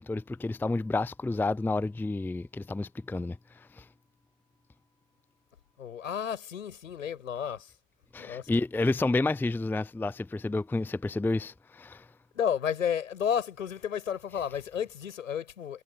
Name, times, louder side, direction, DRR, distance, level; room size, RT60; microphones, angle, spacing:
voice 1, 0.0-3.8 8.1-12.0, left 2 dB, 5° left, 0.6 m, -30 dB
voice 2, 5.8-7.7 8.2-8.5 12.3-15.8, left 8 dB, 80° left, 7.2 m, -32 dB
figure-of-eight pair, 75°, 39 cm